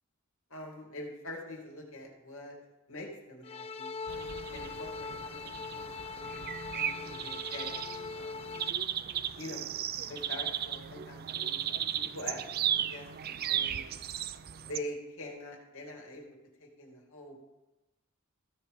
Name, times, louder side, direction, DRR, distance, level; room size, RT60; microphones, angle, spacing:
voice 1, 0.5-2.6 2.9-4.0 4.5-7.8 8.1-8.6 9.4-9.7 10.1-11.6 12.1-12.4 12.7-13.9 14.5-17.4, left 1 dB, 70° left, 0 dB, 2.6 m, -44 dB
sound 1, 3.4-8.7, left 5 dB, 25° left, 0.3 m, -41 dB
sound 2, 4.1-14.8, right 10 dB, 45° right, 0.4 m, -36 dB
15.0 x 5.9 x 5.4 m, 1.0 s
head